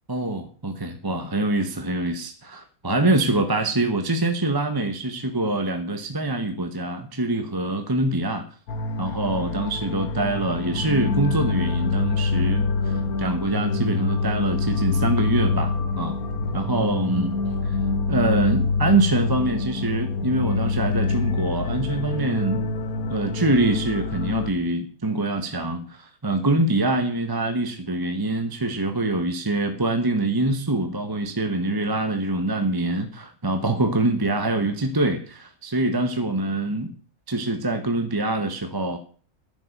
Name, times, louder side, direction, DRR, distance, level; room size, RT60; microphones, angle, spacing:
voice 1, 0.1-8.4 9.0-12.9 13.2-16.2 16.5-17.4 17.6-17.8 18.1-22.6 23.1-36.9 37.3-39.0, right 2 dB, 15° right, 6 dB, 1.1 m, -24 dB
sound 1, 8.7-24.5, left 3 dB, 90° left, 1.6 m, -25 dB
10.5 x 7.1 x 9.0 m, 0.43 s
omnidirectional pair, 1.5 m